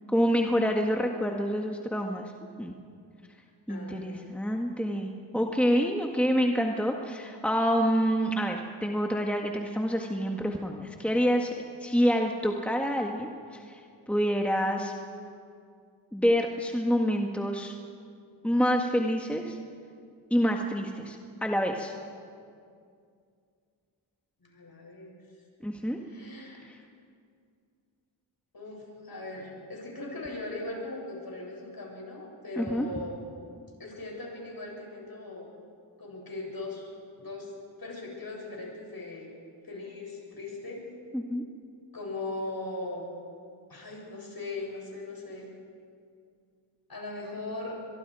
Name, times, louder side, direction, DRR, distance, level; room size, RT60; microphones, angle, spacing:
voice 1, 0.1-2.3 2.6-2.7 3.7-11.5 11.8-14.9 16.1-17.7 18.4-19.6 20.3-21.9 25.6-26.0 26.6-26.8 32.6-32.9 41.1-41.4, equal, 5° left, 2 dB, 1.8 m, -27 dB
voice 2, 3.7-4.2 24.4-25.2 26.0-26.6 28.5-33.2 33.8-35.5 36.0-36.9 37.2-37.5 37.8-39.3 39.6-40.8 41.9-43.0 43.7-45.5 46.9-47.8, left 2 dB, 45° left, -1 dB, 7.7 m, -39 dB
23.0 x 23.0 x 5.0 m, 2.3 s
supercardioid pair, 40°, 49 cm